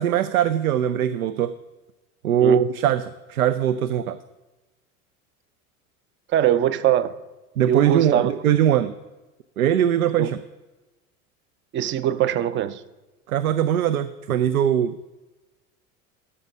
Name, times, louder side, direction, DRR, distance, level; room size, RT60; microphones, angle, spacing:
voice 1, 0.0-1.5 2.2-4.2 7.6-8.9 9.6-10.4 13.3-15.0, right 10 dB, 75° right, 14 dB, 0.5 m, -21 dB
voice 2, 6.3-7.1 7.7-8.3 10.2-10.3 11.7-12.8, right 11 dB, 25° right, 15 dB, 0.5 m, -22 dB
12.5 x 5.6 x 5.4 m, 1.1 s
figure-of-eight pair, 70°, 44 cm